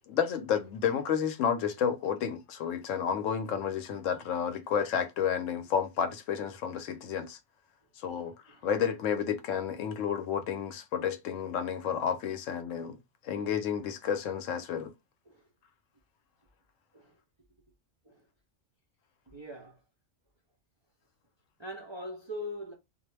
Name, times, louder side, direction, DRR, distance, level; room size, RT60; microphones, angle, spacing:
voice 1, 0.1-7.4 8.0-8.3 8.6-13.0 13.2-14.9, left 8 dB, 85° left, 0.9 m, -31 dB
voice 2, 8.1-8.7 15.3-15.5 16.9-17.2 18.0-18.3 19.3-19.8 21.6-22.7, left 1 dB, 45° right, 0.3 m, -42 dB
2.4 x 2.0 x 3.1 m
omnidirectional pair, 1.3 m